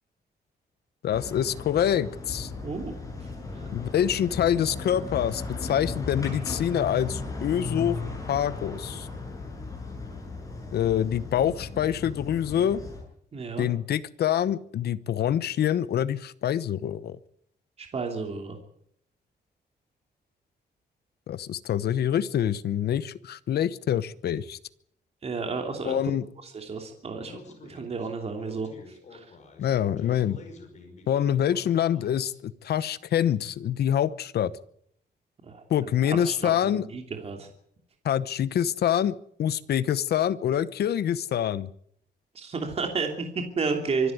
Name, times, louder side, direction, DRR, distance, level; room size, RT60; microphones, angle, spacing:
voice 1, 1.0-2.5 3.7-8.0 8.3-9.1 10.7-12.8 13.6-17.2 21.3-24.6 25.8-26.3 29.6-30.4 31.1-34.5 35.7-36.9 38.0-41.7, left 10 dB, 70° left, 16 dB, 1.0 m, -26 dB
sound 1, 1.1-13.0, left 3 dB, 20° left, 7.4 m, -36 dB
voice 2, 2.6-3.0 11.4-11.5 13.3-13.7 17.8-18.6 25.2-26.0 26.4-28.7 29.1-29.2 35.5-37.5 42.3-44.1, right 4 dB, 35° right, 4 dB, 3.0 m, -32 dB
Speech, 27.2-32.4, left 3 dB, 45° left, 5.2 m, -49 dB
24.5 x 11.5 x 9.4 m, 0.68 s
wide cardioid pair, 165°, 17 cm